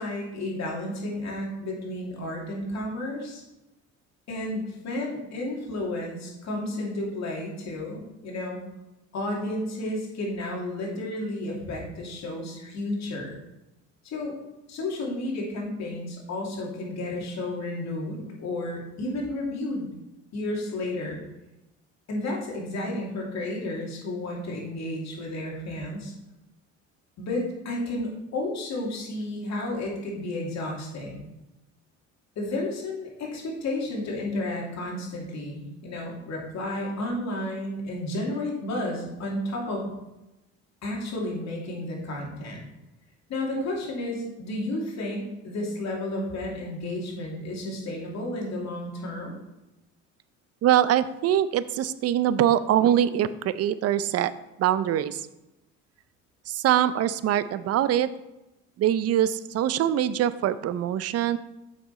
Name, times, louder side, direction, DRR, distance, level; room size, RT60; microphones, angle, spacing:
voice 1, 0.0-3.4 4.3-8.6 9.1-13.4 14.0-14.3 14.7-19.9 20.3-21.2 22.1-26.1 27.2-31.2 32.4-39.9 40.8-42.6 43.3-49.4, left 1 dB, 55° left, -2 dB, 2.6 m, -32 dB
voice 2, 50.6-54.3 54.6-55.3 56.5-58.1 58.8-61.4, right 11 dB, 50° right, 15 dB, 0.5 m, -23 dB
7.2 x 6.1 x 4.1 m, 0.95 s
supercardioid pair, 80°, 33 cm